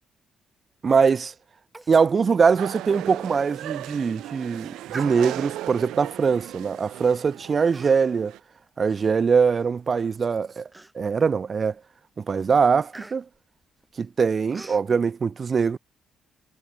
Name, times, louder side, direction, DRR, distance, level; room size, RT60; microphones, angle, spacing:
voice 1, 0.8-1.3 1.9-8.3 8.8-10.7 11.0-11.7 12.2-13.2 14.0-15.8, right 5 dB, 40° right, 0.3 m, -22 dB
Human voice, 1.7-2.1 2.4-2.5 3.0-3.1 3.7-3.9 4.9-5.6 6.4-6.6 7.6-8.2 8.6-9.7 10.1-10.2 10.7-11.3 11.8-12.0 12.3-14.9, right 2 dB, 15° right, 4.0 m, -46 dB
sound 1, 2.6-8.4, right 14 dB, 85° right, 2.2 m, -37 dB
cardioid pair, 90°, 0 cm